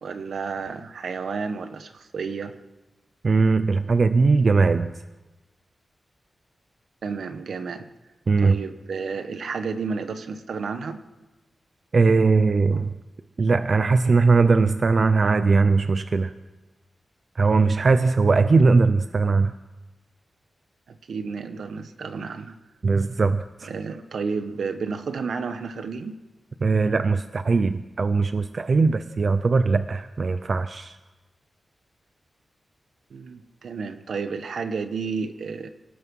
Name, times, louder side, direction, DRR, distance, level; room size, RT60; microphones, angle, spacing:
voice 1, 0.0-2.5 7.0-7.9 8.4-11.0 20.9-22.6 23.6-26.2 33.1-35.7, right 5 dB, 70° right, 9 dB, 1.4 m, -31 dB
voice 2, 3.2-4.9 8.3-8.6 11.9-12.9 13.4-16.3 17.4-19.5 22.8-23.7 26.6-31.0, right 4 dB, 40° right, 11 dB, 0.6 m, -20 dB
27.0 x 18.0 x 5.6 m, 1.1 s
wide cardioid pair, 155°, 0 cm